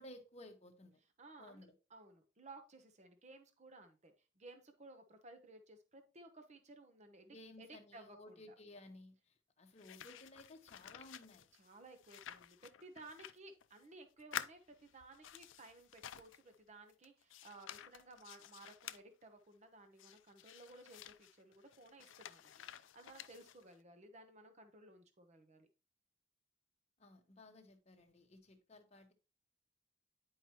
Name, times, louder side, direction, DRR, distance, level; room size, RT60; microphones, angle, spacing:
voice 1, 0.0-1.0 1.4-1.7 7.3-11.5 27.0-29.1, left 1 dB, 35° left, 1.1 m, -57 dB
voice 2, 1.2-8.4 11.6-22.6 22.9-25.7, right 2 dB, 35° right, 0.9 m, -58 dB
sound 1, 9.8-13.9 14.2-16.6 16.9-19.0 20.0-23.8, left 10 dB, 75° left, 0.4 m, -51 dB
9.9 x 4.8 x 2.9 m
head